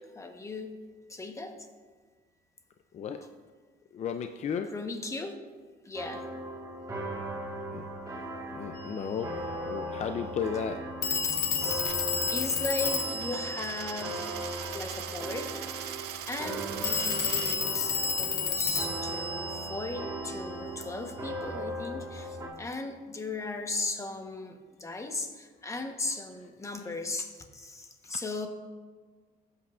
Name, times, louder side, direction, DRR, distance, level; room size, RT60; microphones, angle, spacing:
voice 1, 0.1-0.7 1.1-1.7 4.7-5.3 5.8-6.3 11.2-14.3 14.7-16.0 16.3-28.5, left 2 dB, 15° left, 5 dB, 1.1 m, -37 dB
voice 2, 3.9-4.7 7.7-7.8 8.5-9.3 9.6-10.8, left 7 dB, 45° left, 7 dB, 0.5 m, -34 dB
sound 1, 5.9-22.5, right 1 dB, 20° right, 1.7 m, -38 dB
Telephone, 8.8-8.9 11.0-14.7 16.8-20.5, left 5 dB, 65° left, 1.2 m, -31 dB
Coin (dropping), 11.8-17.6, right 11 dB, 75° right, 0.6 m, -41 dB
15.5 x 8.3 x 2.5 m, 1.5 s
cardioid pair, 110°, 17 cm